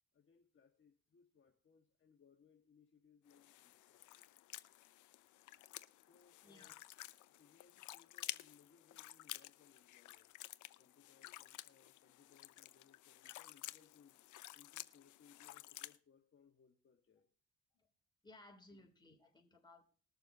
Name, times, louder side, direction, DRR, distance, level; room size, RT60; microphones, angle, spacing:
voice 1, 0.1-4.1 6.0-6.8 7.4-10.3 10.8-14.2 14.5-17.3 18.7-18.9, left 6 dB, 40° left, 1.5 m, -69 dB
sound 1, 3.3-16.0, left 15 dB, 80° left, 0.6 m, -52 dB
voice 2, 6.4-6.7 17.7-17.9 18.2-19.8, left 2 dB, 15° left, 3.4 m, -61 dB
20.0 x 6.8 x 3.9 m
cardioid pair, 90°, 30 cm